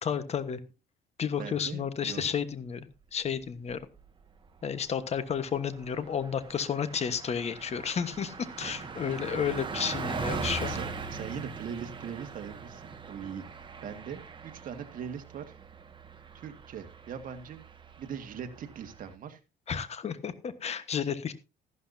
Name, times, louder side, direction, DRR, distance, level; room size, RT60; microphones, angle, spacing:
voice 1, 0.0-0.6 1.2-3.8 4.6-10.8 19.7-21.3, left 7 dB, 40° left, 12 dB, 1.3 m, -32 dB
voice 2, 1.4-2.3 8.6-9.1 9.7-10.0 10.3-13.4 13.8-15.6 16.3-17.6 18.0-19.4, right 7 dB, 55° right, 6 dB, 2.0 m, -41 dB
Car passing by, 3.5-4.1 4.4-4.6 4.9-19.1, right 4 dB, 30° right, 1.7 m, -41 dB
14.0 x 12.0 x 2.7 m, 0.28 s
cardioid pair, 110°, 17 cm